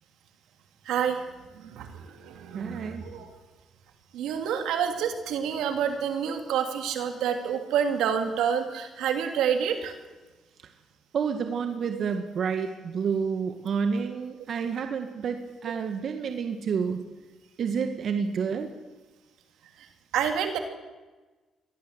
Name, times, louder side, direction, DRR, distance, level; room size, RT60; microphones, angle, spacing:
voice 1, 0.9-1.2 1.7-1.9 2.2-3.3 4.1-9.9 11.9-12.0 20.1-20.6, right 8 dB, 85° right, 6 dB, 2.9 m, -28 dB
voice 2, 2.5-3.0 11.1-17.0 17.6-18.7, right 6 dB, 60° right, 6 dB, 1.8 m, -29 dB
23.0 x 17.5 x 8.2 m, 1.2 s
cardioid pair, 90°, 0 cm